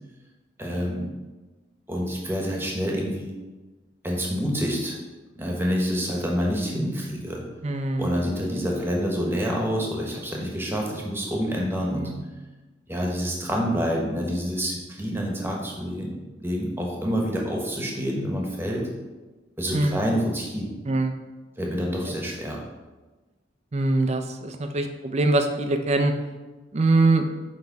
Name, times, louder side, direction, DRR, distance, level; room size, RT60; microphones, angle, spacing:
voice 1, 0.6-1.1 1.9-3.3 4.0-5.0 5.4-7.4 8.0-12.1 12.9-16.1 16.4-18.9 19.6-20.7 21.6-22.6, equal, 10° right, -1 dB, 1.1 m, -27 dB
voice 2, 7.6-8.2 11.9-12.2 19.7-20.1 20.9-21.1 23.7-26.1 26.7-27.3, right 2 dB, 35° right, 6 dB, 0.5 m, -23 dB
8.1 x 3.3 x 4.7 m, 1.2 s
head